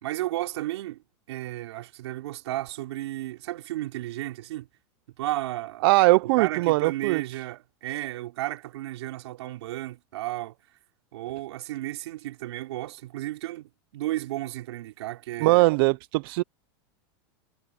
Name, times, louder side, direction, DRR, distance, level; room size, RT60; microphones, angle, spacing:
voice 1, 0.0-4.7 5.2-5.9 6.3-10.6 11.1-15.7, right 16 dB, 80° right, 4.6 m, -33 dB
voice 2, 5.8-7.2 15.4-16.4, right 22 dB, 55° right, 0.6 m, -20 dB
supercardioid pair, 150°, 14 cm